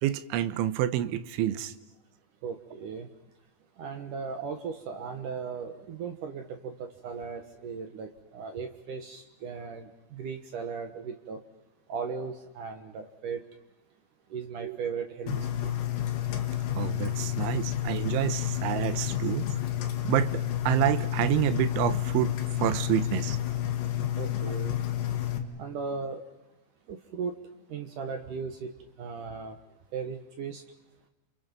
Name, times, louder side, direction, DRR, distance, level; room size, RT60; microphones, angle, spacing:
voice 1, 0.0-1.7 14.6-14.8 16.7-19.5 20.0-23.4, right 12 dB, 90° right, 12 dB, 3.4 m, -28 dB
voice 2, 2.4-3.1 3.8-11.4 11.9-13.4 14.3-15.3 15.6-15.7 24.2-24.8 25.6-26.2 26.9-27.3 27.7-28.7 29.0-29.6 29.9-30.6, right 5 dB, 65° right, 6 dB, 2.2 m, -37 dB
Engine, 15.3-25.4, left 12 dB, 70° left, 3.9 m, -30 dB
30.0 x 28.5 x 5.4 m, 1.1 s
omnidirectional pair, 5.3 m